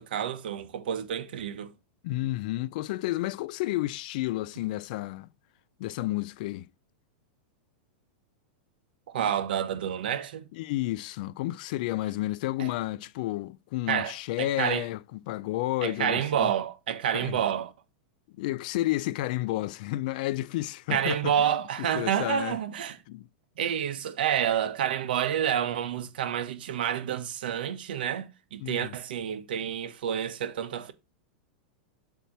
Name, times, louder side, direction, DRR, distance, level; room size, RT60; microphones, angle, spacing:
voice 1, 0.0-1.7 9.1-10.4 12.6-12.7 13.9-14.1 14.4-14.8 15.8-17.7 20.9-23.0 23.6-30.9, right 9 dB, 80° right, 1.0 m, -29 dB
voice 2, 2.0-5.3 5.8-6.7 10.5-16.5 17.1-17.4 18.4-21.5 21.8-22.6 23.1-23.3 28.6-29.0, left 16 dB, 60° left, 0.4 m, -31 dB
7.1 x 2.9 x 5.9 m
supercardioid pair, 135°, 5 cm